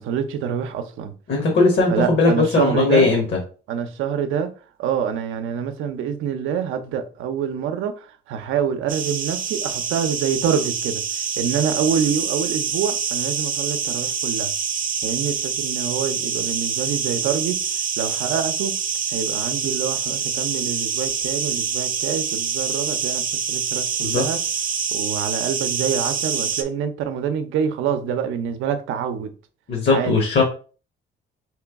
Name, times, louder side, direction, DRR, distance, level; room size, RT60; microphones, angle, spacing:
voice 1, 0.0-1.1 1.9-3.1 3.7-4.5 4.8-11.0 11.4-14.5 15.0-17.6 18.0-18.8 19.1-24.4 24.9-29.3 29.9-30.2, right 7 dB, 85° right, 0.6 m, -26 dB
voice 2, 1.3-3.2 24.0-24.2 29.7-30.4, left 3 dB, 60° left, 1.1 m, -18 dB
sound 1, 8.9-26.6, right 7 dB, 45° right, 0.6 m, -26 dB
3.2 x 3.0 x 3.4 m
cardioid pair, 90°, 20 cm